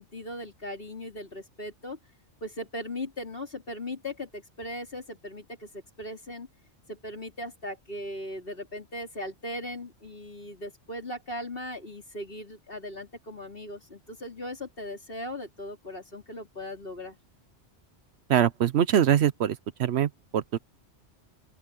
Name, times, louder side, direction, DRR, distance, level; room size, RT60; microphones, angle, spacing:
voice 1, 0.0-2.0 2.4-6.5 6.9-17.2, left 1 dB, 50° left, 4.4 m, -38 dB
voice 2, 18.3-20.6, right 9 dB, 70° right, 0.9 m, -23 dB
open air
omnidirectional pair, 1.2 m